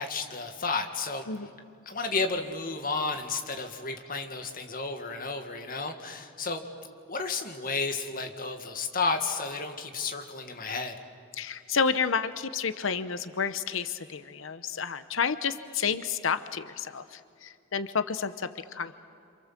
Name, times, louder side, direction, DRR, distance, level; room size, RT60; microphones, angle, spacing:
voice 1, 0.0-1.3 1.9-6.6 7.1-10.9, left 4 dB, 45° left, 5 dB, 2.0 m, -32 dB
voice 2, 11.3-18.9, left 6 dB, 80° left, 11 dB, 0.9 m, -30 dB
28.5 x 27.0 x 7.6 m, 2.4 s
head